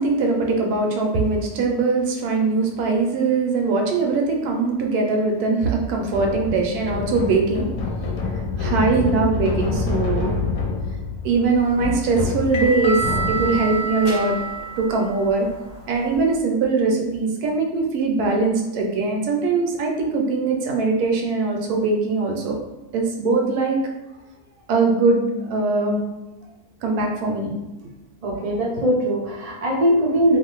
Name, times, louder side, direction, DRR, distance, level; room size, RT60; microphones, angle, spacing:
voice 1, 0.0-7.7 8.6-10.3 11.2-13.0 13.3-14.4 14.8-15.5 15.9-22.6 22.9-23.8 24.7-26.0 26.8-27.5 27.8-27.9, right 3 dB, 90° right, 1 dB, 1.1 m, -21 dB
sound 1, 6.1-13.8, left 4 dB, 70° left, 0.9 m, -27 dB
sound 2, 11.4-16.3, right 4 dB, 55° left, 0.4 m, -29 dB
voice 2, 28.2-30.4, equal, 65° right, -4 dB, 0.3 m, -20 dB
2.7 x 2.4 x 3.0 m, 1.0 s
omnidirectional pair, 1.6 m